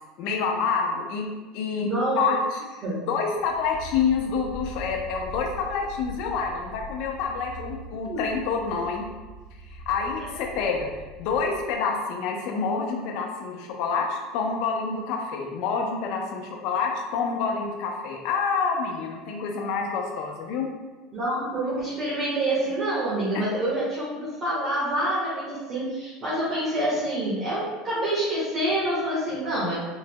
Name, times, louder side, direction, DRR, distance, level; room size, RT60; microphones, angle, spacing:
voice 1, 0.2-1.3 1.5-1.9 2.2-2.7 3.1-9.0 9.9-10.9 11.2-20.7, left 5 dB, 65° left, 1 dB, 0.6 m, -27 dB
voice 2, 1.8-2.3 2.8-3.0 8.0-8.2 21.1-29.7, right 1 dB, 30° right, -10 dB, 1.4 m, -27 dB
sound 1, 3.3-11.8, equal, 15° left, 1.1 m, -42 dB
3.9 x 3.1 x 2.2 m, 1.2 s
supercardioid pair, 110°, 0 cm